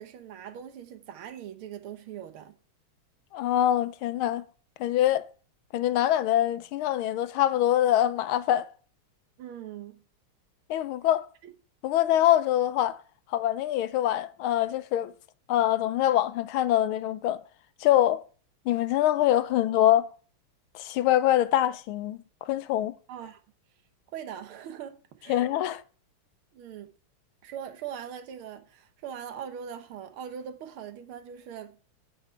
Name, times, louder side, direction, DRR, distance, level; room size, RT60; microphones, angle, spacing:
voice 1, 0.0-2.6 9.4-10.0 11.4-11.5 23.1-23.4 24.1-25.5 26.5-26.9 27.4-31.8, right 9 dB, 80° right, 1.9 m, -41 dB
voice 2, 3.3-4.4 4.8-5.3 5.7-8.7 10.7-11.3 11.8-13.0 13.3-15.1 15.5-17.4 17.8-18.2 18.7-20.1 20.7-22.9 25.3-25.8, left 12 dB, 80° left, 1.5 m, -24 dB
8.1 x 8.1 x 4.4 m
omnidirectional pair, 2.3 m